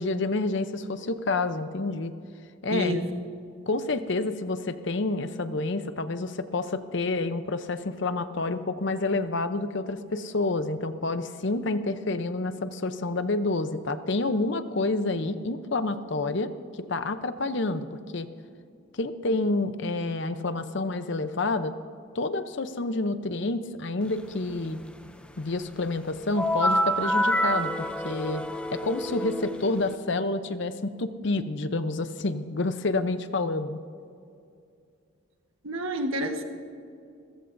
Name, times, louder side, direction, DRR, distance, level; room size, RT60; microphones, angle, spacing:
voice 1, 0.0-2.1 2.6-3.0 3.7-16.5 16.9-17.9 18.1-18.3 18.9-21.7 22.1-24.8 25.4-28.4 28.7-33.8, left 2 dB, 55° left, 11 dB, 0.7 m, -28 dB
voice 2, 2.7-3.0 35.6-36.4, equal, 75° right, 4 dB, 1.4 m, -28 dB
sound 1, 26.4-30.0, equal, 5° left, 0.5 m, -27 dB
28.0 x 14.5 x 2.6 m, 2.4 s
head